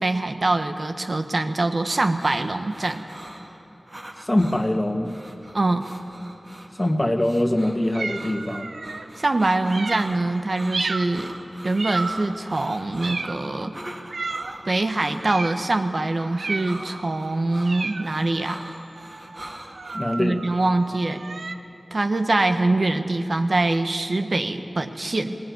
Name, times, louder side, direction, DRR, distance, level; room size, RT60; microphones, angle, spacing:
voice 1, 0.0-3.0 5.5-5.9 9.2-11.3 11.6-13.7 14.6-18.6 20.2-21.2 21.9-25.4, right 2 dB, 55° right, 7 dB, 1.2 m, -24 dB
sound 1, 1.8-20.0, right 1 dB, 35° right, 2.4 m, -43 dB
voice 2, 4.2-5.1 6.8-8.7 19.9-20.4, left 1 dB, 20° left, 6 dB, 1.7 m, -23 dB
sound 2, 7.9-9.1 9.7-10.2 10.7-11.2 11.8-12.4 13.0-13.5 14.1-14.6 15.2-15.6 16.3-16.9 17.6-21.5, right 3 dB, 85° right, 0.9 m, -33 dB
19.5 x 19.5 x 9.4 m, 3.0 s
wide cardioid pair, 55°, 0 cm